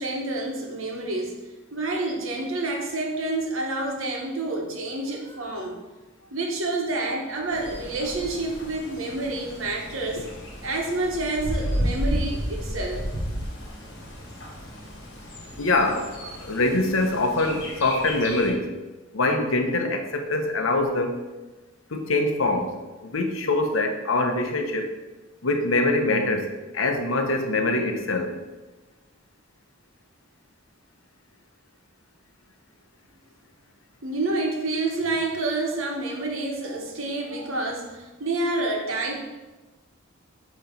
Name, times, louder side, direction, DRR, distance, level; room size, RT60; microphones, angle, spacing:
voice 1, 0.0-1.4 1.7-5.8 6.3-10.2 10.6-13.0 34.0-39.2, right 2 dB, 75° right, 1 dB, 1.2 m, -28 dB
Bird, 7.5-18.5, equal, 55° left, 2.0 m, -33 dB
voice 2, 15.6-18.7 19.1-21.2 21.9-22.7 23.0-25.0 25.4-26.5 26.7-28.3, left 2 dB, 75° left, 5 dB, 0.9 m, -24 dB
7.5 x 3.1 x 5.2 m, 1.2 s
head